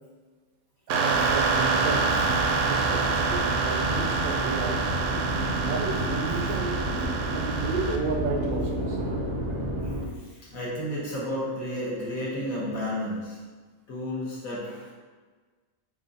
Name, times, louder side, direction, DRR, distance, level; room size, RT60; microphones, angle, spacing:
sound 1, 0.9-8.0, right 4 dB, 70° right, 0.8 m, -27 dB
voice 1, 0.9-2.2 2.7-4.9 5.6-6.8 7.3-9.0, right 4 dB, 85° right, 3 dB, 1.1 m, -32 dB
sound 2, 1.1-10.1, right 1 dB, 45° right, 0.3 m, -31 dB
sound 3, 1.5-7.1, equal, 55° left, 0.9 m, -39 dB
voice 2, 10.4-13.4 13.9-14.9, equal, 90° left, -6 dB, 1.7 m, -32 dB
5.0 x 3.7 x 2.7 m, 1.4 s
omnidirectional pair, 1.5 m